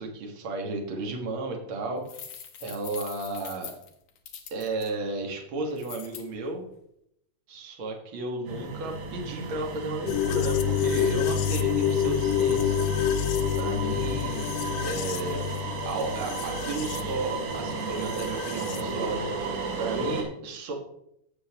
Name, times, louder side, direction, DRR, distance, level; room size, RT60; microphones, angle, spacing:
voice 1, 0.0-2.3 2.6-3.8 4.5-6.6 7.5-12.8 13.6-14.5 14.8-15.5 15.8-20.7, right 2 dB, 60° right, 1 dB, 1.3 m, -33 dB
sound 1, 2.1-4.9 5.8-6.2, left 8 dB, 70° left, 1.7 m, -43 dB
sound 2, 8.5-20.2, right 4 dB, 90° right, 4.1 m, -34 dB
sound 3, 10.1-18.8, left 8 dB, 90° left, 2.9 m, -28 dB
16.5 x 6.8 x 3.0 m, 0.75 s
omnidirectional pair, 5.0 m